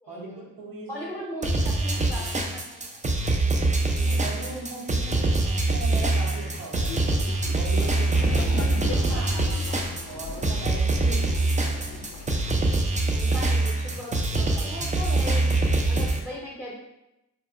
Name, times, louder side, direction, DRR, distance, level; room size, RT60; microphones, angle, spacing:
voice 1, 0.0-0.5 0.9-3.0 3.9-4.3 9.1-9.8 11.0-11.7 13.1-15.5 15.9-16.8, equal, 5° left, -5 dB, 0.7 m, -39 dB
voice 2, 0.6-1.2 4.0-9.5 10.0-11.2 11.6-12.0, right 2 dB, 70° right, -2 dB, 0.8 m, -39 dB
sound 1, 1.4-16.2, right 2 dB, 20° right, 0.4 m, -24 dB
Laughter, 6.8-12.6, left 3 dB, 50° left, 0.4 m, -38 dB
2.8 x 2.1 x 2.4 m, 0.89 s
supercardioid pair, 45°, 36 cm